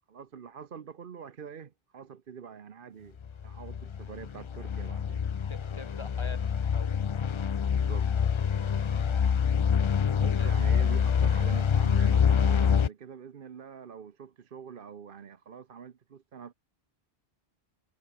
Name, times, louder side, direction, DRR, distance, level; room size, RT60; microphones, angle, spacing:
voice 1, 0.1-3.2 3.4-5.3 7.7-8.1 10.2-16.5, right 7 dB, 55° right, 1.0 m, -45 dB
sound 1, 3.2-12.9, left 7 dB, 50° left, 0.3 m, -26 dB
voice 2, 5.5-7.0 8.9-9.2 10.3-10.5, left 3 dB, 25° left, 1.8 m, -45 dB
omnidirectional pair, 1.1 m